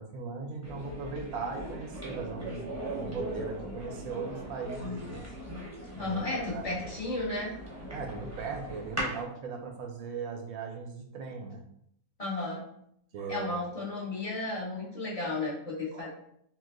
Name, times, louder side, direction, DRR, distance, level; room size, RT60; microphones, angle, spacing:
voice 1, 0.0-5.2 6.0-6.7 7.9-11.6 13.1-13.6 15.9-16.1, right 5 dB, 80° right, 4 dB, 1.1 m, -39 dB
sound 1, 0.6-9.2, equal, 15° right, 0.9 m, -39 dB
voice 2, 6.0-7.5 12.2-12.6 13.3-16.1, left 2 dB, 25° left, -6 dB, 1.3 m, -33 dB
5.6 x 2.4 x 2.5 m, 0.72 s
omnidirectional pair, 1.5 m